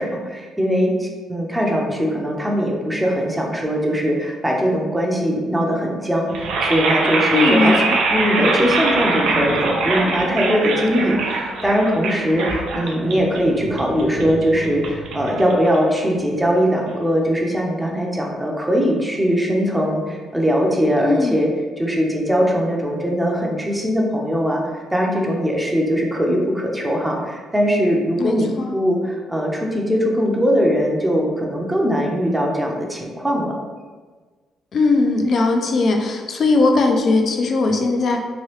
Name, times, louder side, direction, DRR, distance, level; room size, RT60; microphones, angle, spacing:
voice 1, 0.0-7.8 8.1-21.5 21.8-33.5, equal, 5° right, -1 dB, 0.6 m, -21 dB
sound 1, 6.3-16.4, right 3 dB, 85° right, 0.4 m, -23 dB
voice 2, 7.3-8.0 21.0-21.3 28.2-28.7 34.7-38.2, left 3 dB, 55° left, 3 dB, 0.4 m, -19 dB
3.0 x 2.2 x 3.1 m, 1.4 s
cardioid pair, 90°, 0 cm